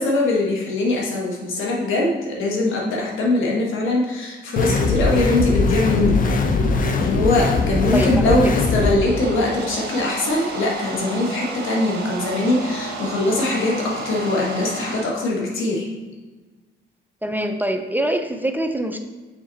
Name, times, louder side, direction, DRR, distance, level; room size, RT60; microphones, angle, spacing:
voice 1, 0.0-6.3 7.0-15.9, left 2 dB, 80° left, -2 dB, 1.5 m, -22 dB
sound 1, 4.6-8.9, left 3 dB, 45° left, 0.7 m, -20 dB
voice 2, 7.9-8.5 17.2-19.0, right 1 dB, 10° right, 5 dB, 0.5 m, -24 dB
sound 2, 8.7-15.1, right 3 dB, 55° right, 1.5 m, -32 dB
5.9 x 4.1 x 4.1 m, 1.3 s
cardioid pair, 90°, 20 cm